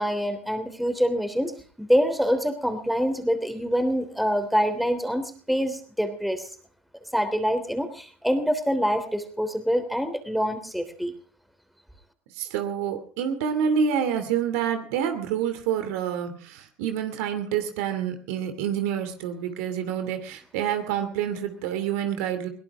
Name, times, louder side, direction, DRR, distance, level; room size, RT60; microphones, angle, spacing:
voice 1, 0.0-6.5 7.1-11.1, equal, ahead, 8 dB, 3.3 m, -25 dB
voice 2, 12.4-22.5, right 8 dB, 75° right, 8 dB, 2.8 m, -27 dB
22.0 x 17.5 x 3.7 m, 0.41 s
hypercardioid pair, 85°, 7 cm